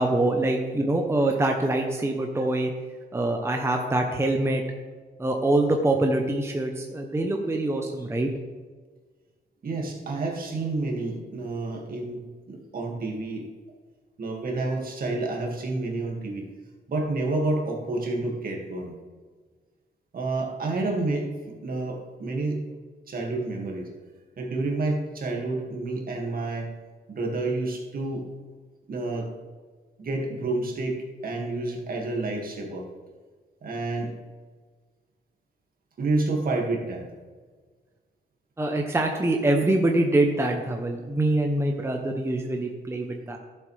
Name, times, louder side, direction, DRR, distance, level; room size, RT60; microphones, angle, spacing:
voice 1, 0.0-2.7 3.1-4.6 5.2-8.3 38.6-43.4, right 2 dB, 15° right, 3 dB, 0.8 m, -24 dB
voice 2, 9.6-13.5 14.2-16.5 16.9-19.0 20.1-22.6 23.1-23.9 24.4-26.7 27.1-28.3 28.9-29.3 30.0-32.9 33.6-34.1 36.0-37.1, right 2 dB, 55° right, 1 dB, 2.1 m, -29 dB
12.0 x 7.4 x 3.4 m, 1.4 s
cardioid pair, 110°, 18 cm